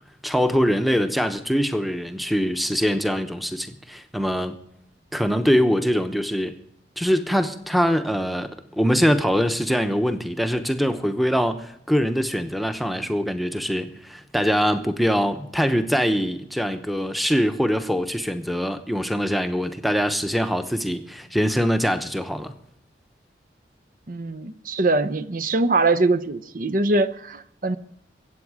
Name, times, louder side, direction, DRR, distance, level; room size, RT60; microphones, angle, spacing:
voice 1, 0.2-4.5 5.1-6.6 7.0-22.5, equal, ahead, 0.9 m, -23 dB
voice 2, 24.1-27.8, right 2 dB, 50° right, 0.7 m, -22 dB
23.0 x 8.4 x 4.9 m
head